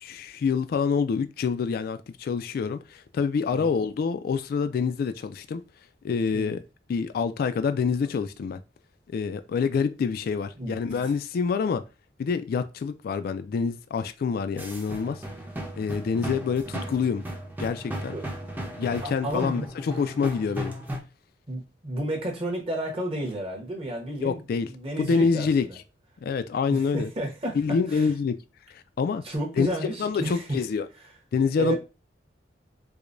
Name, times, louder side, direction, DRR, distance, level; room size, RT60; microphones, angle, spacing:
voice 1, 0.0-5.6 6.0-6.6 6.9-8.6 9.1-11.8 12.2-15.2 15.8-17.2 17.6-18.1 18.8-20.7 24.2-24.7 25.0-25.6 26.2-27.1 27.6-28.4 28.7-29.2 29.6-29.7 30.0-30.9 31.3-31.8, left 5 dB, 55° left, 0.3 m, -26 dB
sound 1, 14.6-21.0, equal, 10° right, 0.6 m, -35 dB
voice 2, 19.0-19.7 21.5-25.8 26.7-28.1 29.2-30.6 31.6-31.8, right 1 dB, 30° right, 1.0 m, -32 dB
4.7 x 2.1 x 2.5 m
head